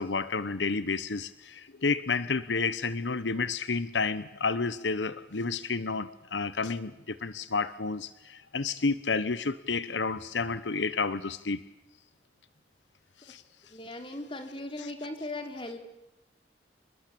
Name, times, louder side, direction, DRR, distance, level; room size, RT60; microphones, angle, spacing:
voice 1, 0.0-11.6 13.2-13.4 14.8-14.9, left 4 dB, 90° left, 15 dB, 1.0 m, -30 dB
voice 2, 13.7-15.8, left 2 dB, 30° left, 6 dB, 3.9 m, -38 dB
29.5 x 21.0 x 8.6 m, 0.90 s
head